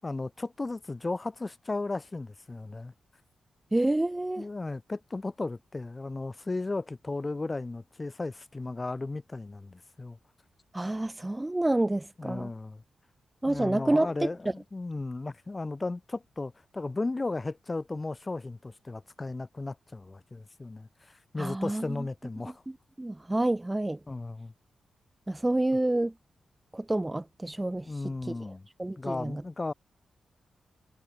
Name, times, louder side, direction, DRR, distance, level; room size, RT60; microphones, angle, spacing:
voice 1, 0.0-2.9 4.4-10.2 12.2-12.8 13.5-22.6 24.1-24.5 27.8-28.7 29.0-29.7, left 3 dB, 25° left, 6.7 m, -35 dB
voice 2, 3.7-4.5 10.7-12.5 13.4-14.3 21.4-22.0 23.0-24.0 25.3-26.1 26.7-28.3 28.8-29.4, right 1 dB, 15° right, 1.6 m, -28 dB
wide cardioid pair, 110°, 0 cm